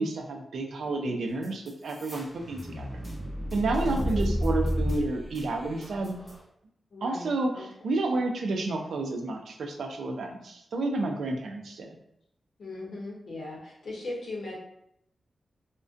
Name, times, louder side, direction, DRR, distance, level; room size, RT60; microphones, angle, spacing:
voice 1, 0.0-3.0 3.5-6.2 7.0-12.0, right 2 dB, 80° right, 4 dB, 0.3 m, -30 dB
sound 1, 1.4-6.4, equal, 5° right, 0.8 m, -31 dB
voice 2, 3.8-4.3 6.9-7.3 7.5-7.6 12.6-14.5, left 2 dB, 60° left, -5 dB, 0.7 m, -38 dB
2.4 x 2.1 x 2.5 m, 0.76 s
wide cardioid pair, 175°, 0 cm